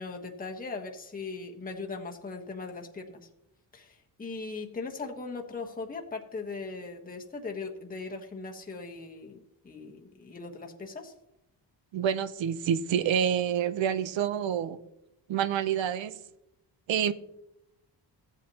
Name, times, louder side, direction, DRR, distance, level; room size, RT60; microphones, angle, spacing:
voice 1, 0.0-3.3 3.7-11.1, left 4 dB, 20° left, 1.1 m, -39 dB
voice 2, 11.9-14.8 15.3-16.2 16.9-17.1, right 8 dB, 80° right, 0.7 m, -27 dB
15.5 x 8.1 x 2.8 m
wide cardioid pair, 130°, 45 cm